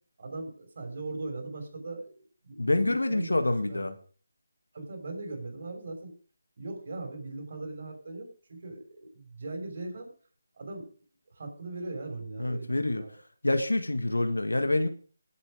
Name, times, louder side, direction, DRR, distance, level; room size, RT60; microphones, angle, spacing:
voice 1, 0.2-3.9 4.7-6.1 6.6-10.1 10.5-10.9 11.3-13.2, right 2 dB, 50° right, 4 dB, 6.0 m, -39 dB
voice 2, 2.6-4.0 12.4-13.0 13.4-14.9, left 2 dB, 85° left, 8 dB, 1.8 m, -26 dB
19.5 x 8.0 x 5.1 m, 0.41 s
figure-of-eight pair, 160°, 0 cm